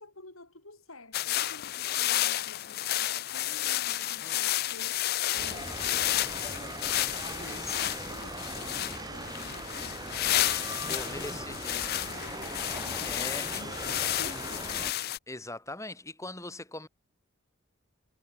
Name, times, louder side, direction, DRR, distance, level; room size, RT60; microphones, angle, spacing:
voice 1, 0.0-14.9, left 2 dB, 70° left, 5.8 m, -51 dB
sound 1, 1.1-15.2, left 14 dB, 45° left, 0.4 m, -31 dB
sound 2, 5.4-14.9, right 2 dB, 15° right, 1.1 m, -40 dB
voice 2, 7.5-7.9 10.9-11.9 12.9-13.5 15.3-16.9, left 2 dB, 15° left, 4.8 m, -41 dB
head